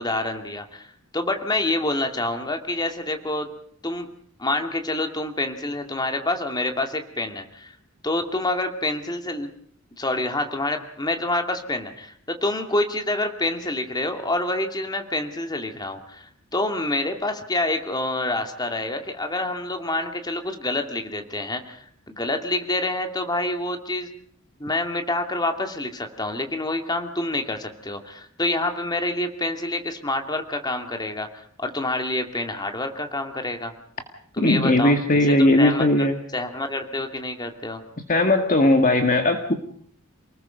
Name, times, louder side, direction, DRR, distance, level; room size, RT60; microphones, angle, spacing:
voice 1, 0.0-3.5 3.8-4.1 4.4-7.8 8.0-9.5 10.0-24.1 24.6-33.7 34.3-35.0 35.4-36.1 36.3-37.8, left 2 dB, 20° left, 2.5 m, -27 dB
voice 2, 34.4-36.1 38.1-39.5, left 1 dB, 35° left, 1.9 m, -18 dB
28.5 x 20.0 x 5.2 m
head